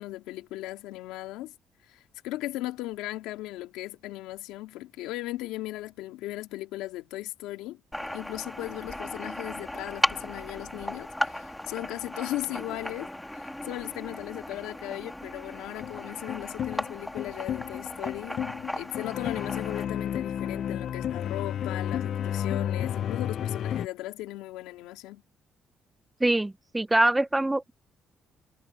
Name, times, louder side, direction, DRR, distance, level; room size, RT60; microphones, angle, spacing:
voice 1, 0.0-1.5 1.9-7.8 8.1-18.4 18.7-25.2, left 16 dB, 85° left, 3.0 m, -37 dB
sound 1, 7.9-19.8, left 1 dB, 10° left, 3.3 m, -36 dB
sound 2, 15.8-23.9, left 10 dB, 65° left, 0.7 m, -32 dB
voice 2, 26.2-27.7, right 2 dB, 15° right, 0.9 m, -24 dB
supercardioid pair, 65°, 0 cm